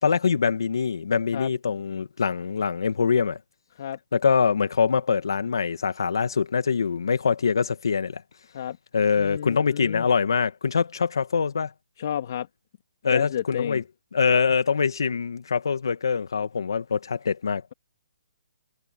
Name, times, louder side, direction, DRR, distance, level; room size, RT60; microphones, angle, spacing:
voice 1, 0.0-3.4 4.1-8.2 8.9-11.7 13.0-13.8 14.1-17.6, left 6 dB, 75° left, 2.0 m, -24 dB
voice 2, 9.2-10.1 12.0-12.5 13.0-13.8, left 10 dB, 45° left, 2.1 m, -31 dB
hypercardioid pair, 160°, 2 cm